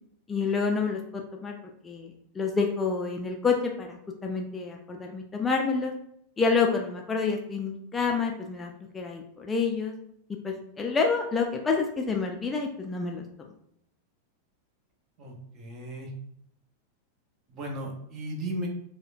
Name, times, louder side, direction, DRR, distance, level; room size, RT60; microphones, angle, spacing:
voice 1, 0.3-1.6 1.8-5.9 6.4-9.9 10.4-13.2, left 4 dB, 15° left, 1 dB, 0.4 m, -28 dB
voice 2, 15.2-16.1 17.5-18.7, right 1 dB, 35° right, 1 dB, 0.9 m, -36 dB
4.7 x 2.1 x 2.6 m, 0.71 s
figure-of-eight pair, 90°, 0 cm